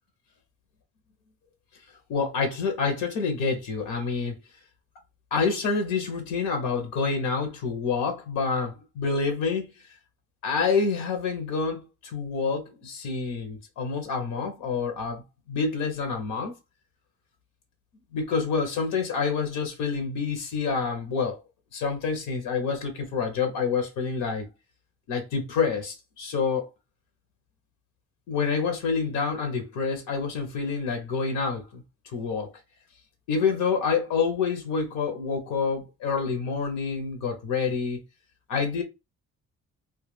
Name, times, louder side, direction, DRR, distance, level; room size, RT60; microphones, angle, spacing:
voice 1, 2.1-4.4 5.3-9.7 10.4-15.2 15.5-16.5 18.1-21.4 21.7-24.5 25.1-26.7 28.3-31.8 32.1-32.5 33.3-38.0 38.5-38.8, left 5 dB, 90° left, 0.7 m, -27 dB
2.3 x 2.1 x 3.1 m
cardioid pair, 90°, 30 cm